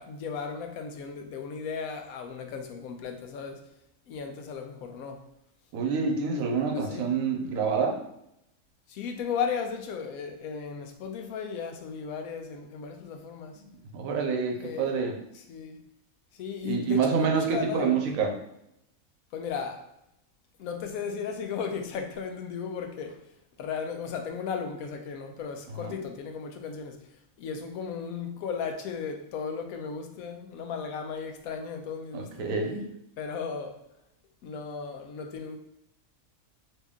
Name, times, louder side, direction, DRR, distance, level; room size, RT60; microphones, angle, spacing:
voice 1, 0.0-3.6 4.1-5.3 6.7-7.1 8.9-13.6 14.6-15.0 15.3-15.8 16.4-18.1 19.3-19.9 20.6-23.2 23.6-27.0 27.4-32.5 33.2-33.8 34.4-35.6, left 6 dB, 90° left, 1.0 m, -35 dB
voice 2, 5.7-8.0 13.6-13.7 13.9-15.2 16.6-18.3 25.7-25.9 32.1-32.9, right 5 dB, 80° right, 1.1 m, -27 dB
2.9 x 2.8 x 3.5 m
omnidirectional pair, 1.4 m